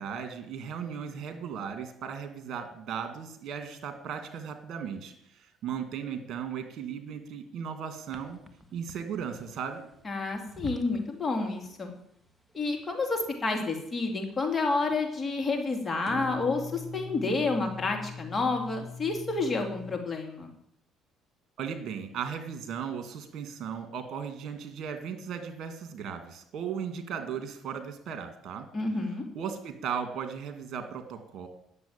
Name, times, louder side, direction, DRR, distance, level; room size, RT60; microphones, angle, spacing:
voice 1, 0.0-8.4 8.7-9.9 21.6-28.7 29.3-31.5, right 7 dB, 60° right, 7 dB, 2.2 m, -36 dB
sound 1, 8.1-11.2 11.4-12.0 12.2-12.3 12.7-13.4 13.8-14.5 16.0-20.0, left 3 dB, 5° right, 1.6 m, -43 dB
voice 2, 10.0-11.9 12.5-20.5 28.7-29.2, left 3 dB, 30° left, 3 dB, 2.7 m, -29 dB
10.0 x 7.3 x 8.8 m, 0.72 s
supercardioid pair, 75°, 0 cm